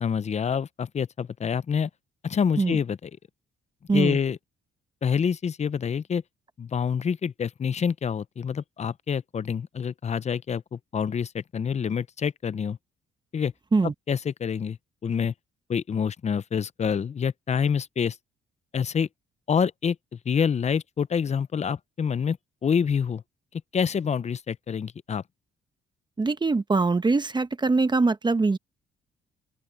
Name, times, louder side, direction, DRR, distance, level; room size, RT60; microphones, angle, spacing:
voice 1, 0.0-1.9 2.2-3.1 3.9-4.4 5.0-6.2 6.6-12.8 13.3-13.5 14.1-14.8 15.0-15.3 15.7-18.2 18.7-19.1 19.5-20.0 20.3-22.4 22.6-23.2 23.7-25.2, left 7 dB, 35° left, 0.6 m, -27 dB
voice 2, 26.2-28.6, right 3 dB, 20° right, 1.0 m, -23 dB
open air
cardioid pair, 90°, 20 cm